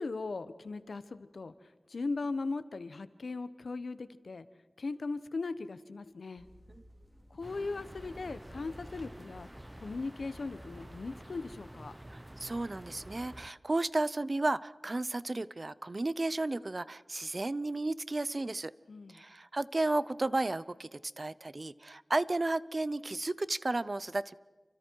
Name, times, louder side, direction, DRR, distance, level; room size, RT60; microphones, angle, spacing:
voice 1, 0.0-1.5 1.9-4.4 4.8-6.5 7.3-9.5 9.8-11.9 18.9-19.2, left 3 dB, 85° left, 13 dB, 1.1 m, -38 dB
sound 1, 6.4-11.5, equal, ahead, 3.4 m, -57 dB
sound 2, 7.4-13.5, right 1 dB, 15° right, 0.8 m, -49 dB
voice 2, 12.1-18.7 19.1-24.4, right 2 dB, 45° right, 18 dB, 0.7 m, -33 dB
29.5 x 25.0 x 4.7 m, 1.4 s
wide cardioid pair, 50°, 0 cm